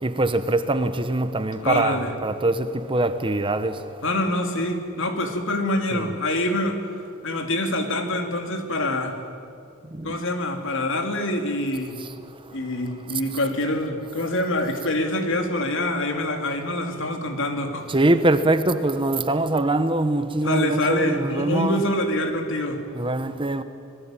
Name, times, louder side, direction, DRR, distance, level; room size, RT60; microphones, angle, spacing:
voice 1, 0.0-3.8 5.9-6.1 9.9-10.2 17.9-21.8 22.9-23.6, right 2 dB, 25° right, 1.0 m, -23 dB
voice 2, 1.6-2.1 4.0-6.8 7.2-9.2 10.0-12.0 12.5-18.0 20.4-22.8, left 1 dB, 60° left, 2.9 m, -25 dB
26.0 x 21.0 x 9.0 m
head